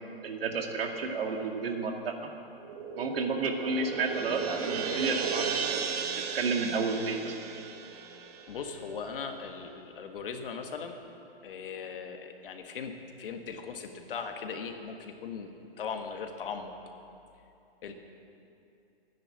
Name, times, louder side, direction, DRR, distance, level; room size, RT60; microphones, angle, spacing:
voice 1, 0.2-2.1 3.0-5.9 6.3-7.3, right 4 dB, 70° right, 3 dB, 2.2 m, -31 dB
sound 1, 2.6-9.1, right 6 dB, 40° right, 1.2 m, -35 dB
voice 2, 8.5-11.0 11.4-12.9 13.2-15.5 15.8-16.7 17.8-17.9, left 6 dB, 60° left, 5 dB, 1.7 m, -39 dB
13.0 x 10.0 x 8.2 m, 2.6 s
hypercardioid pair, 150°, 30 cm